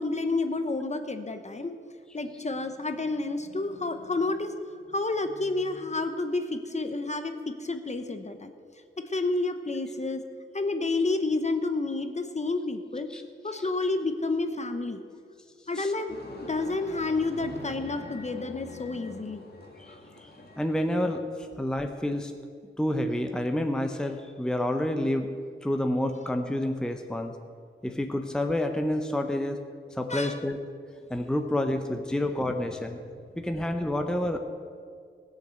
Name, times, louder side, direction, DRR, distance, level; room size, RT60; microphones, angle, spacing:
voice 1, 0.0-1.7 2.1-4.5 4.9-8.5 9.0-10.2 10.5-13.1 13.4-15.0 15.7-16.2 16.5-19.4 30.1-30.4, left 3 dB, 35° left, 8 dB, 0.9 m, -30 dB
sound 1, 16.1-21.2, left 1 dB, 50° left, 1.9 m, -43 dB
voice 2, 19.8-20.3 20.6-22.3 22.8-25.3 25.6-27.3 27.8-29.6 29.9-30.6 31.1-33.0 33.4-34.4, left 1 dB, 5° left, 5 dB, 0.8 m, -29 dB
16.5 x 6.6 x 7.7 m, 2.2 s
wide cardioid pair, 90°, 21 cm